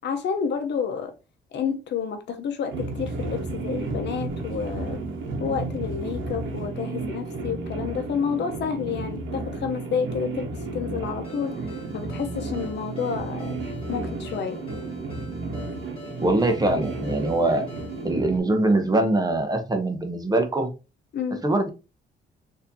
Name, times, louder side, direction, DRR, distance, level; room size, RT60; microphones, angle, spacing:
voice 1, 0.0-1.1 1.5-5.0 5.4-11.6 11.9-13.6 13.9-14.6 21.1-21.4, left 6 dB, 60° left, 0.7 m, -29 dB
sound 1, 2.7-18.4, right 3 dB, 75° right, 0.9 m, -32 dB
Ringtone, 11.2-18.1, left 3 dB, 30° left, 1.8 m, -46 dB
voice 2, 16.2-17.6 18.0-20.7 21.4-21.7, right 2 dB, 20° right, 0.7 m, -22 dB
4.1 x 2.7 x 2.7 m
cardioid pair, 90°, 20 cm